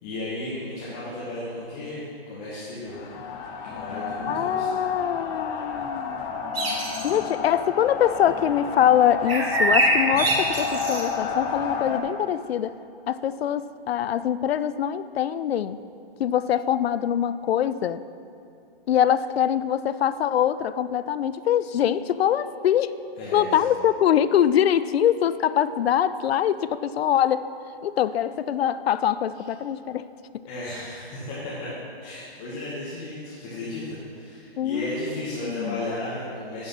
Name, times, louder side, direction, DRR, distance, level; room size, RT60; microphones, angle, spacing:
voice 1, 0.0-3.0 3.6-4.9 23.2-23.5 30.5-31.7 32.0-36.7, left 1 dB, 40° left, -9 dB, 2.0 m, -34 dB
sound 1, 2.9-12.0, left 5 dB, 15° left, 0.4 m, -31 dB
voice 2, 4.3-6.3 7.0-12.8 13.1-15.8 16.2-18.0 18.9-23.0 23.3-27.5 27.8-30.1 30.3-30.4 34.6-35.1 35.4-35.9, left 10 dB, 80° left, 14 dB, 0.5 m, -23 dB
sound 2, 6.5-7.1 9.3-11.0, right 2 dB, 75° right, 2.2 m, -23 dB
9.9 x 4.8 x 5.9 m, 2.6 s
hypercardioid pair, 135°, 30 cm